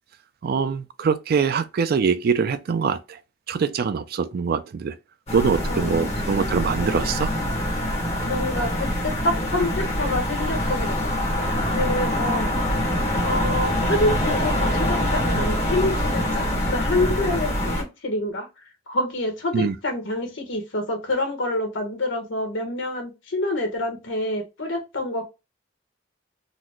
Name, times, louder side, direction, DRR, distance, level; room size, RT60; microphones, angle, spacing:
voice 1, 0.4-3.0 3.5-4.9 5.3-7.3 19.5-19.7, right 5 dB, 55° right, 0.4 m, -23 dB
sound 1, 5.3-17.8, equal, 35° left, 1.4 m, -24 dB
voice 2, 5.7-6.4 8.2-11.0 11.3-11.4 11.7-12.5 13.2-18.5 18.9-25.2, left 1 dB, 75° left, 1.2 m, -27 dB
3.9 x 2.1 x 3.0 m
head